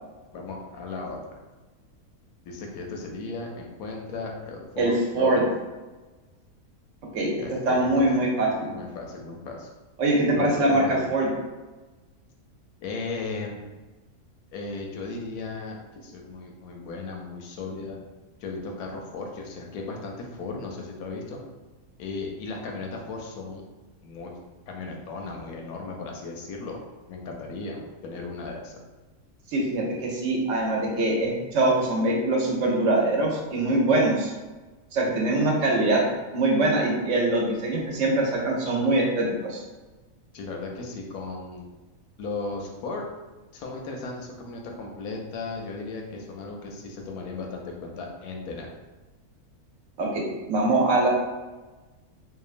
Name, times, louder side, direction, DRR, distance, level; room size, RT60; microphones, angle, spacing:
voice 1, 0.3-1.2 2.5-5.4 7.4-8.2 8.7-9.7 10.3-11.0 12.8-13.6 14.5-18.0 18.4-21.4 22.0-23.6 24.0-24.3 24.7-26.8 27.1-28.8 40.3-41.6 42.2-43.0 43.5-48.7, left 3 dB, 85° left, 1 dB, 1.0 m, -36 dB
voice 2, 4.8-5.4 7.1-7.3 7.7-8.7 10.0-10.8 11.1-11.3 29.5-34.3 34.9-36.0 36.3-39.6 50.0-51.1, right 2 dB, 65° right, -1 dB, 0.9 m, -23 dB
2.9 x 2.2 x 2.4 m, 1.2 s
omnidirectional pair, 1.5 m